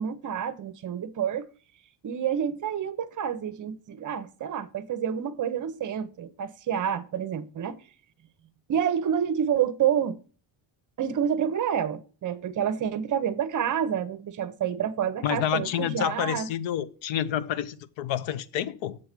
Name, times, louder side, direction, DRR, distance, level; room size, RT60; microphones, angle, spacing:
voice 1, 0.0-1.5 2.0-7.8 8.7-10.2 11.0-16.5, right 8 dB, 40° right, 0.7 m, -28 dB
voice 2, 15.2-19.0, left 10 dB, 65° left, 0.8 m, -29 dB
7.5 x 4.7 x 6.5 m
cardioid pair, 155°, 50 cm